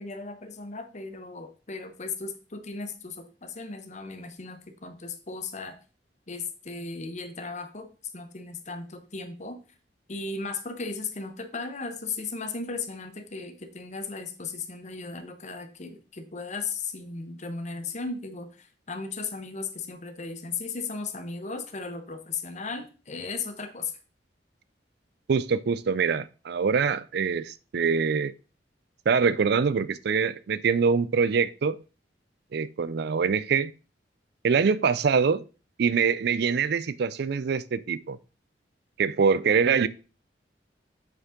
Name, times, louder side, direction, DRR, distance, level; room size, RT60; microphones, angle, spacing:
voice 1, 0.0-5.8 6.3-7.9 8.1-9.6 10.1-23.9, left 4 dB, 40° left, 1.0 m, -36 dB
voice 2, 25.3-28.3 29.1-31.8 32.5-33.7 34.4-35.4 35.8-38.2 39.0-39.9, right 5 dB, 65° right, 0.4 m, -24 dB
8.0 x 5.4 x 3.7 m
head